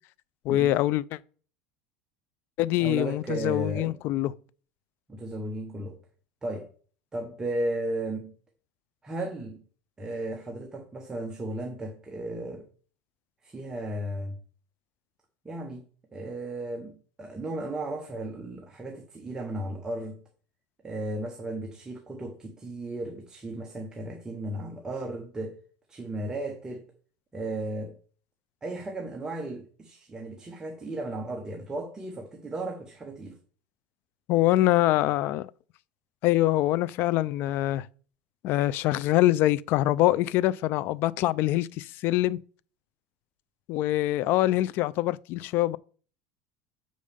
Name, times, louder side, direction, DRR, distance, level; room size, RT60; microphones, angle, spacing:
voice 1, 0.4-1.2 2.6-4.3 34.3-35.5 36.2-37.9 38.4-42.4 43.7-45.8, left 15 dB, 50° left, 0.4 m, -24 dB
voice 2, 2.8-4.0 5.1-6.0 6.4-6.7 7.1-8.3 9.0-9.6 10.0-12.7 13.4-14.4 15.4-15.8 16.1-20.2 20.8-25.6 25.9-26.8 27.3-28.0 28.6-33.4, right 1 dB, 15° right, 1.1 m, -35 dB
6.4 x 5.1 x 6.8 m
supercardioid pair, 130°, 5 cm